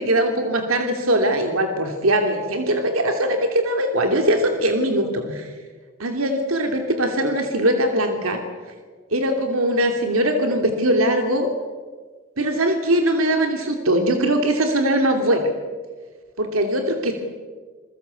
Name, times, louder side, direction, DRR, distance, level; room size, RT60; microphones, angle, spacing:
voice 1, 0.0-5.5 6.0-8.4 9.1-11.5 12.4-15.5 16.4-17.1, right 1 dB, 85° right, 5 dB, 2.8 m, -21 dB
28.0 x 22.0 x 8.3 m, 1.5 s
head